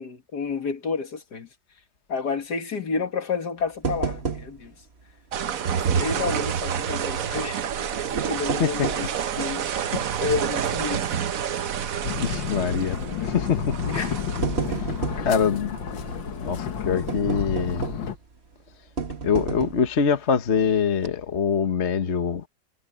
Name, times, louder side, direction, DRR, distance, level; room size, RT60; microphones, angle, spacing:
voice 1, 0.0-1.5 2.1-4.7 5.7-7.6 8.1-9.1 9.4-9.9 10.2-11.1 13.9-14.1 14.7-14.8, left 5 dB, 60° left, 2.4 m, -30 dB
sound 1, 3.8-4.8 5.1-5.2 5.9-6.6 7.9-9.2 9.8-9.9 10.5-10.7 11.0-11.1 12.3-12.6 13.5-13.6 14.1-15.3 17.1-18.2 19.0-19.9 20.5-20.6 20.9-21.1, right 5 dB, 35° right, 1.5 m, -31 dB
sound 2, 5.3-17.9, right 8 dB, 55° right, 1.2 m, -29 dB
voice 2, 8.6-9.1 9.7-10.0 12.2-13.8 14.8-14.9 15.2-15.8 16.4-17.9 19.2-22.5, left 6 dB, 40° left, 1.3 m, -24 dB
sound 3, 12.0-18.2, left 6 dB, 90° left, 2.2 m, -31 dB
omnidirectional pair, 2.0 m